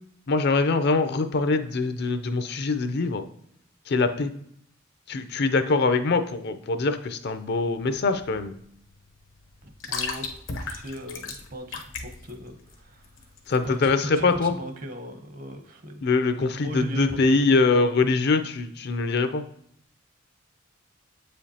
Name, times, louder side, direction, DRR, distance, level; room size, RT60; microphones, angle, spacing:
voice 1, 0.3-3.2 3.9-4.3 5.1-8.5 13.5-14.6 16.0-19.4, left 3 dB, 60° left, 10 dB, 0.5 m, -23 dB
sound 1, 7.3-14.0, left 4 dB, 80° left, 0.9 m, -37 dB
voice 2, 9.6-13.3 13.6-16.0 16.6-17.6, equal, 45° right, 6 dB, 0.9 m, -38 dB
7.6 x 5.1 x 2.8 m, 0.69 s
head